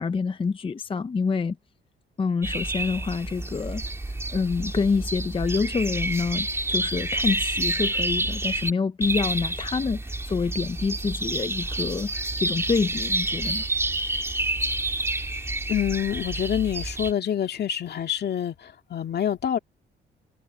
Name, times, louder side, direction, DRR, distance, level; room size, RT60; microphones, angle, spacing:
voice 1, 0.0-1.6 2.2-13.7, left 5 dB, 25° left, 0.7 m, -27 dB
sound 1, 2.4-8.7 9.0-17.1, right 2 dB, 15° right, 2.1 m, -29 dB
voice 2, 15.7-19.6, left 9 dB, 55° left, 2.2 m, -27 dB
cardioid pair, 90°, 20 cm